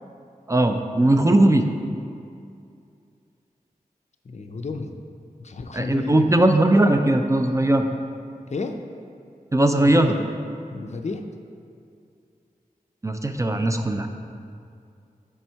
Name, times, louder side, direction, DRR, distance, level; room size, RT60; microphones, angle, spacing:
voice 1, 0.5-1.6 5.7-7.9 9.5-10.1 13.0-14.1, right 1 dB, 20° right, 6 dB, 0.3 m, -19 dB
voice 2, 4.2-5.0 5.4-6.3 8.5-8.8 9.8-10.2 10.7-11.2, left 3 dB, 50° left, 6 dB, 0.4 m, -31 dB
7.1 x 3.5 x 4.5 m, 2.4 s
wide cardioid pair, 65°, 15 cm